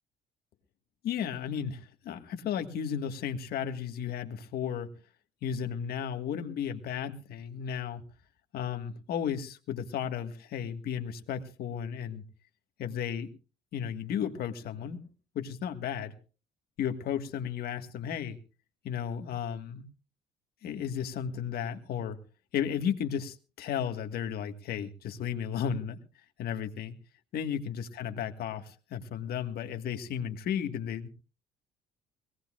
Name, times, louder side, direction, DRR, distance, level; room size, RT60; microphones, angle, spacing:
voice 1, 1.0-4.9 5.4-8.0 8.5-12.2 12.8-13.3 13.7-15.0 15.4-16.1 16.8-18.4 18.8-19.9 20.6-22.2 22.5-26.0 26.4-27.0 27.3-31.1, left 8 dB, 65° left, 7 dB, 1.7 m, -34 dB
22.5 x 17.5 x 2.5 m, 0.35 s
cardioid pair, 110°, 17 cm